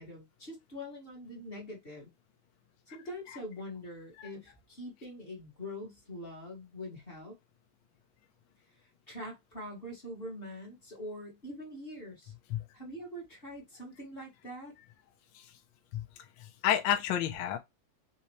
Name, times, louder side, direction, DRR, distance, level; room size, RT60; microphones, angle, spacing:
voice 1, 0.0-2.1 2.9-7.4 8.7-12.3 12.7-14.7, left 1 dB, 20° left, 1.7 m, -44 dB
voice 2, 16.4-17.6, left 10 dB, 70° left, 1.1 m, -30 dB
4.4 x 3.7 x 3.1 m
omnidirectional pair, 3.4 m